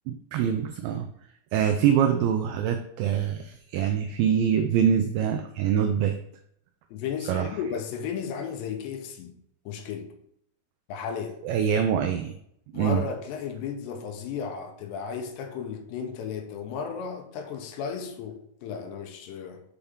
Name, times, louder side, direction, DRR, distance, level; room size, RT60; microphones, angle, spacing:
voice 1, 0.1-1.1 1.5-6.2 7.2-7.5 11.4-12.4 12.7-13.0, right 8 dB, 80° right, 2.3 m, -24 dB
voice 2, 6.9-9.3 9.7-10.1 10.9-11.4 12.7-19.6, left 6 dB, 85° left, 3.1 m, -34 dB
7.0 x 5.5 x 3.6 m
omnidirectional pair, 4.8 m